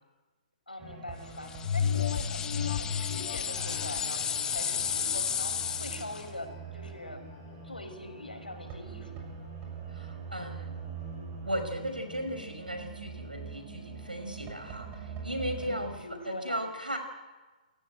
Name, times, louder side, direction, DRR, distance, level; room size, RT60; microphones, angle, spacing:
voice 1, 0.7-9.3 15.5-16.7, left 1 dB, 85° left, 6 dB, 5.9 m, -43 dB
sound 1, 0.8-16.0, right 5 dB, 25° right, 7.1 m, -44 dB
sound 2, 1.5-6.3, left 8 dB, 15° left, 1.7 m, -33 dB
sound 3, 1.6-6.6 7.0-7.1, left 8 dB, 50° left, 3.4 m, -34 dB
voice 2, 9.9-10.7 11.4-16.0 16.3-17.0, equal, 90° right, 7 dB, 5.5 m, -36 dB
29.5 x 16.5 x 8.9 m, 1.2 s
figure-of-eight pair, 125°, 5 cm